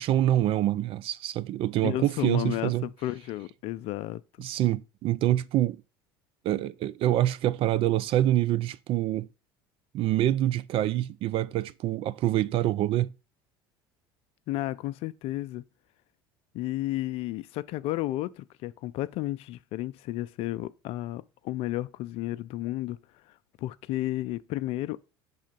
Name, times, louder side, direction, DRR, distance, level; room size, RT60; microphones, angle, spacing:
voice 1, 0.0-2.9 4.4-5.8 6.4-9.3 9.9-13.1, right 13 dB, 50° right, 0.4 m, -26 dB
voice 2, 1.8-4.2 14.5-15.6 16.5-23.0 23.6-25.1, left 15 dB, 55° left, 0.4 m, -32 dB
5.6 x 3.7 x 5.1 m
hypercardioid pair, 75°, 12 cm